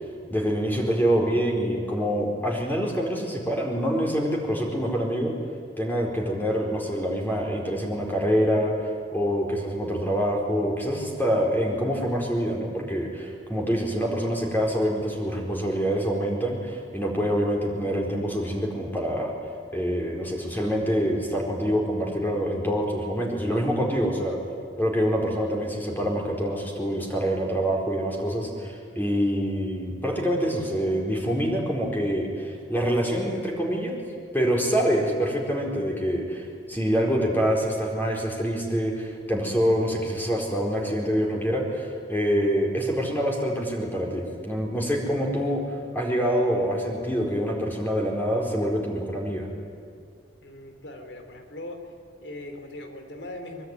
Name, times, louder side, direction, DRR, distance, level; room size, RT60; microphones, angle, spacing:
voice 1, 0.3-5.3 5.8-19.3 19.7-24.4 24.8-34.0 34.3-45.6 45.9-49.5, equal, 10° left, -1 dB, 4.4 m, -26 dB
voice 2, 50.4-51.8 52.2-53.7, left 1 dB, 85° left, 5 dB, 3.5 m, -40 dB
23.5 x 23.5 x 9.7 m, 2.3 s
head